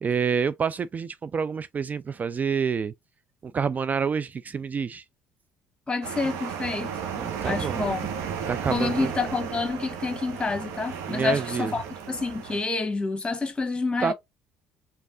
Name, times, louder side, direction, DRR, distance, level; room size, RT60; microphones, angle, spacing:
voice 1, 0.0-2.9 3.4-5.0 7.2-7.9 8.5-9.1 11.1-11.7 14.0-14.1, right 6 dB, 30° right, 0.3 m, -28 dB
voice 2, 5.9-6.9 7.4-8.1 8.7-14.1, left 3 dB, 20° left, 1.5 m, -28 dB
sound 1, 6.0-12.6, right 7 dB, 65° right, 1.3 m, -34 dB
5.2 x 3.5 x 2.4 m
figure-of-eight pair, 55°, 5 cm